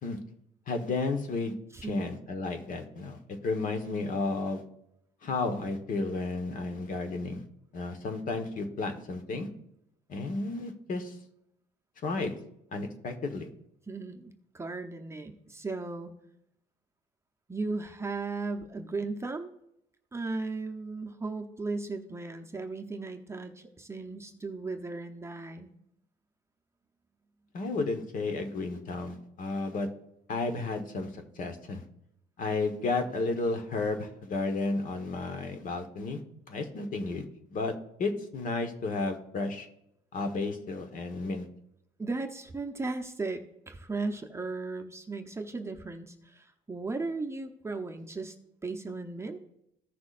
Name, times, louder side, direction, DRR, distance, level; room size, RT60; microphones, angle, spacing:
voice 1, 0.7-1.5 1.9-4.6 5.2-7.4 7.7-9.5 10.1-11.2 12.0-12.3 12.7-13.5 27.5-29.9 30.3-31.8 32.4-36.2 36.5-37.2 37.5-37.7 38.0-39.7 40.1-41.5, left 3 dB, 50° left, 6 dB, 1.3 m, -32 dB
voice 2, 13.9-16.1 17.5-19.5 20.1-25.7 42.0-48.3 48.6-49.4, right 3 dB, 15° right, 3 dB, 0.7 m, -36 dB
15.0 x 6.1 x 2.5 m, 0.78 s
cardioid pair, 110°, 17 cm